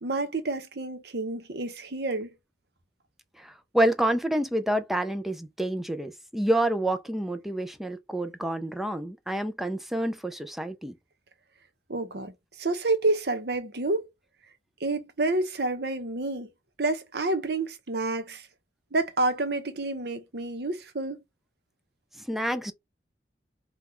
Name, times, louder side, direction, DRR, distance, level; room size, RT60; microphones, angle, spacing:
voice 1, 0.0-2.3 11.9-14.1 14.8-16.5 16.8-18.5 18.9-21.2, right 2 dB, 60° right, 0.9 m, -29 dB
voice 2, 3.4-10.9 22.2-22.7, right 1 dB, ahead, 0.5 m, -28 dB
3.9 x 2.4 x 4.4 m
head